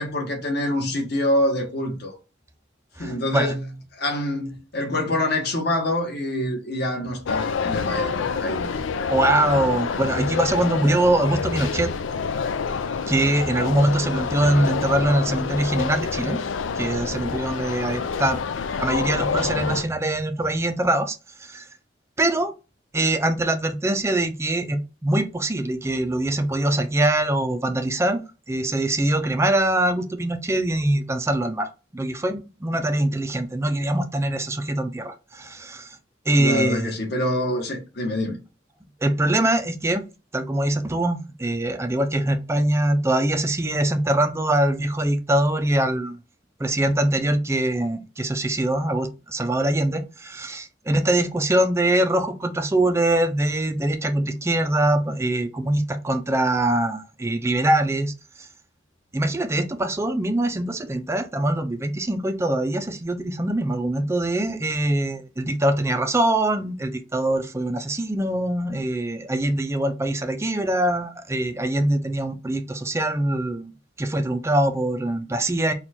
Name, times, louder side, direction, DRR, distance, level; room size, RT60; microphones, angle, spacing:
voice 1, 0.0-2.1 3.0-3.7 3.9-8.7 36.3-38.4, left 1 dB, 55° left, 1.4 m, -25 dB
voice 2, 3.0-3.5 9.1-11.9 13.1-16.4 16.8-18.4 18.7-21.7 22.2-22.5 22.9-28.2 28.5-35.9 36.3-36.9 39.0-40.0 40.3-46.2 46.6-58.5 59.1-73.7 74.0-75.7, right 1 dB, 15° right, 0.5 m, -23 dB
sound 1, 7.3-19.8, left 5 dB, 80° left, 0.4 m, -27 dB
4.3 x 2.4 x 4.3 m
head